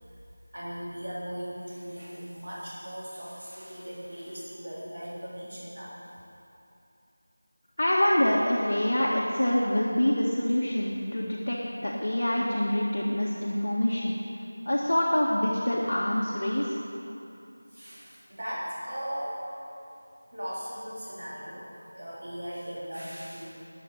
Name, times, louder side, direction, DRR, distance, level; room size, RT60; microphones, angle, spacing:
voice 1, 0.5-6.0 17.7-19.5 20.3-23.6, equal, 65° right, -8 dB, 3.7 m, -38 dB
voice 2, 7.8-14.1 14.6-16.8, left 1 dB, 65° left, -4 dB, 1.7 m, -26 dB
12.5 x 9.3 x 8.2 m, 2.8 s
figure-of-eight pair, 175°, 0 cm